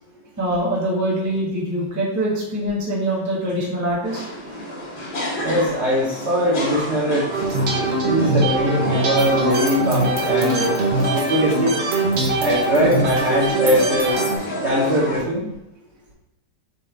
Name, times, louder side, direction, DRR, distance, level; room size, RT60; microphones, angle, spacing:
voice 1, 0.4-4.2, right 1 dB, 10° right, -5 dB, 0.9 m, -23 dB
sound 1, 4.0-15.2, equal, 85° left, 2.5 m, -29 dB
voice 2, 5.4-7.3 8.0-10.7 11.1-11.7 12.4-14.1 14.6-15.5, equal, 50° right, -7 dB, 0.9 m, -21 dB
sound 2, 7.3-14.4, right 2 dB, 90° right, 0.5 m, -22 dB
6.9 x 2.5 x 3.1 m, 0.88 s
omnidirectional pair, 2.1 m